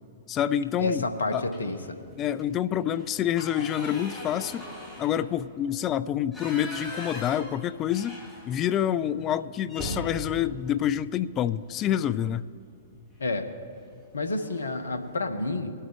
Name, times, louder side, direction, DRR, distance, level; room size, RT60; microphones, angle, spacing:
voice 1, 0.3-1.0 1.3-1.5 2.2-4.7 5.0-8.2 8.5-12.4, left 10 dB, 30° left, 15 dB, 0.4 m, -27 dB
voice 2, 0.8-1.8 13.2-13.5 14.1-15.7, left 2 dB, 80° left, 8 dB, 1.2 m, -29 dB
sound 1, 1.5-1.9 2.3-2.4 2.8-8.8 9.1-9.3 9.7-11.8 13.1-13.4 13.8-13.9 14.2-14.9, left 1 dB, 10° left, 3.1 m, -41 dB
23.5 x 8.7 x 3.4 m, 2.3 s
figure-of-eight pair, 105°, 0 cm